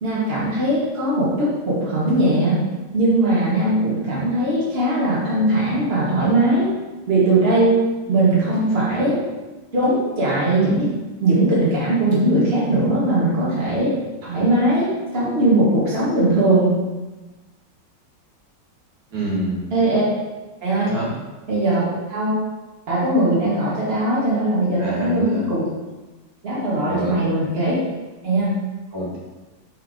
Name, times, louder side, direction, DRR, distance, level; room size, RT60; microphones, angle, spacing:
voice 1, 0.0-2.6 2.9-6.7 7.1-7.8 8.1-9.2 9.7-10.9 11.2-13.9 14.2-16.8 19.7-20.0 20.6-20.9 21.5-22.4 22.9-25.6 26.4-27.8 28.2-28.6, right 1 dB, 30° right, -8 dB, 1.9 m, -19 dB
voice 2, 19.1-19.6 20.9-21.1 24.8-25.4 26.8-27.3 28.9-29.2, right 1 dB, 85° right, -7 dB, 2.6 m, -27 dB
5.4 x 4.7 x 3.8 m, 1.2 s
omnidirectional pair, 2.2 m